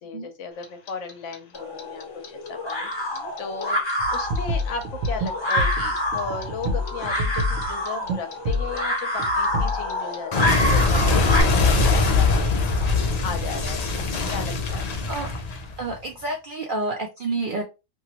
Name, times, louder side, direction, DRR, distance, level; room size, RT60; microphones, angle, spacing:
voice 1, 0.0-3.1 3.4-3.8 4.1-12.8 13.2-13.9 14.3-15.1, left 5 dB, 70° left, 7 dB, 0.9 m, -36 dB
Clock, 0.6-3.6 3.9-6.9 7.2-16.0, left 3 dB, 85° left, 0.3 m, -22 dB
sound 1, 1.5-11.4, left 1 dB, 25° left, 0.8 m, -27 dB
sound 2, 4.0-7.7 8.1-8.2 8.5-8.8 9.2-9.9, left 1 dB, 90° right, 1.0 m, -28 dB
voice 2, 15.8-17.6, right 2 dB, 65° right, 2 dB, 0.5 m, -29 dB
2.9 x 2.6 x 2.8 m, 0.27 s
omnidirectional pair, 1.4 m